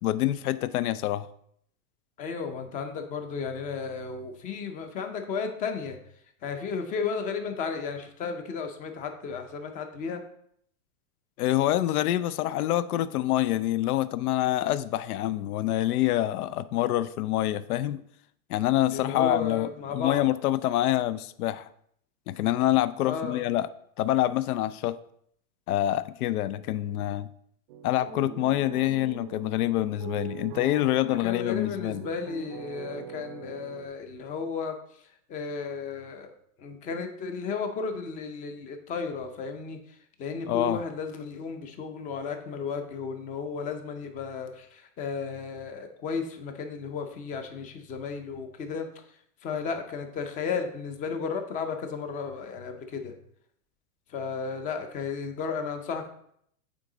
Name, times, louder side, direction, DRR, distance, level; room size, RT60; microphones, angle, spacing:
voice 1, 0.0-1.3 11.4-18.0 18.5-21.7 22.3-23.7 24.0-25.0 25.7-27.3 27.8-32.1 40.5-40.8, left 14 dB, 85° left, 0.5 m, -26 dB
voice 2, 2.2-6.0 6.4-10.2 18.9-20.2 23.0-23.4 31.0-34.8 35.3-36.3 36.6-48.9 49.4-53.1 54.1-56.1, left 5 dB, 20° left, 0.5 m, -34 dB
sound 1, 27.7-33.9, right 10 dB, 40° right, 0.5 m, -42 dB
8.9 x 3.7 x 3.8 m
supercardioid pair, 145°, 43 cm